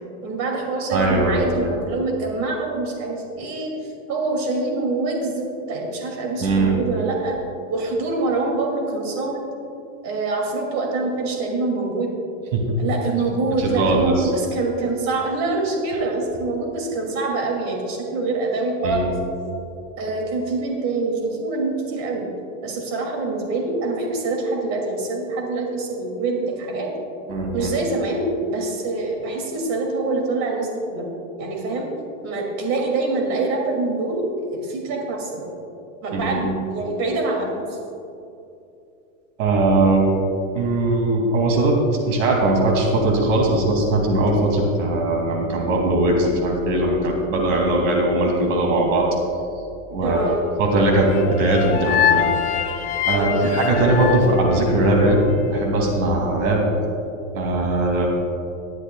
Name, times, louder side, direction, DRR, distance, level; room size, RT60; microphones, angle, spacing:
voice 1, 0.2-7.4 7.7-9.4 10.0-12.1 12.8-19.1 20.0-22.3 22.6-26.9 27.5-31.1 31.4-31.9 32.2-35.5 36.0-37.8 50.0-50.4 53.1-53.5, right 3 dB, 40° right, 0 dB, 2.7 m, -25 dB
voice 2, 0.9-1.7 6.4-6.7 12.5-12.7 13.6-14.3 18.8-19.1 27.3-27.7 36.1-36.5 39.4-40.1 40.5-41.8 42.0-49.1 49.9-50.3 50.6-52.3 53.0-56.6 57.3-58.1, right 2 dB, 70° right, 0 dB, 2.8 m, -20 dB
sound 1, 51.1-55.3, left 9 dB, 20° left, 0.4 m, -24 dB
18.5 x 12.5 x 2.4 m, 2.6 s
supercardioid pair, 140°, 39 cm